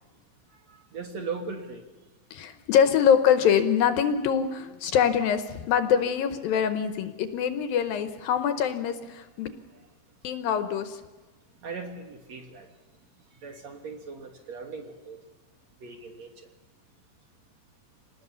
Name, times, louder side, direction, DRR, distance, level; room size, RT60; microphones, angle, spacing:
voice 1, 0.7-1.9 11.6-12.7 13.4-15.2 15.8-16.3, right 4 dB, 55° right, 4 dB, 2.4 m, -38 dB
voice 2, 2.3-9.5 10.2-11.0, left 8 dB, 70° left, 9 dB, 2.5 m, -24 dB
27.0 x 19.0 x 6.9 m, 1.2 s
omnidirectional pair, 4.6 m